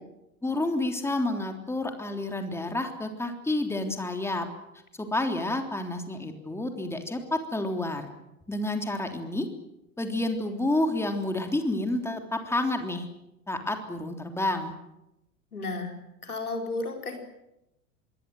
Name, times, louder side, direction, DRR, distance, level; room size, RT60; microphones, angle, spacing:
voice 1, 0.4-4.5 5.0-8.1 8.5-9.5 10.0-13.1 13.5-14.7, left 2 dB, 5° left, 5 dB, 3.3 m, -29 dB
voice 2, 15.5-15.9 16.2-17.2, left 2 dB, 80° left, 3 dB, 4.8 m, -32 dB
26.5 x 22.0 x 7.8 m, 0.90 s
figure-of-eight pair, 85°, 44 cm